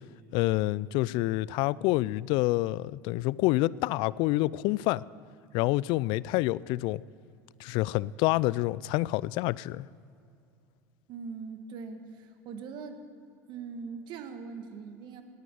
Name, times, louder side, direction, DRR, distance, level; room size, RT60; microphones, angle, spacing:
voice 1, 0.3-5.0 5.5-7.0 7.6-9.9, left 18 dB, 60° left, 0.4 m, -27 dB
voice 2, 11.1-13.0 13.5-15.2, right 5 dB, 55° right, 1.5 m, -41 dB
17.5 x 9.5 x 7.8 m
hypercardioid pair, 80°, 9 cm